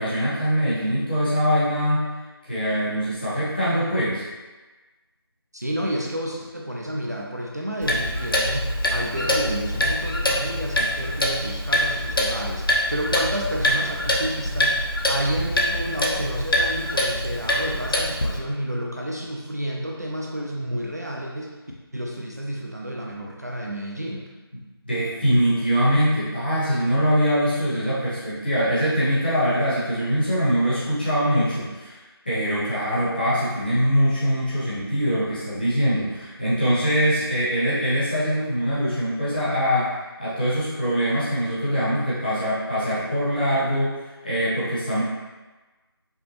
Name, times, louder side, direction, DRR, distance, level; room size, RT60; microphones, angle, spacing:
voice 1, 0.0-2.0 2.4-4.2 24.8-39.9 40.2-45.0, equal, 20° left, -11 dB, 1.0 m, -23 dB
voice 2, 5.5-21.6 21.9-24.3, equal, 40° right, -2 dB, 0.3 m, -30 dB
Clock, 7.8-18.4, left 1 dB, 60° left, 0.6 m, -24 dB
5.1 x 2.1 x 2.8 m, 1.2 s
figure-of-eight pair, 175°, 13 cm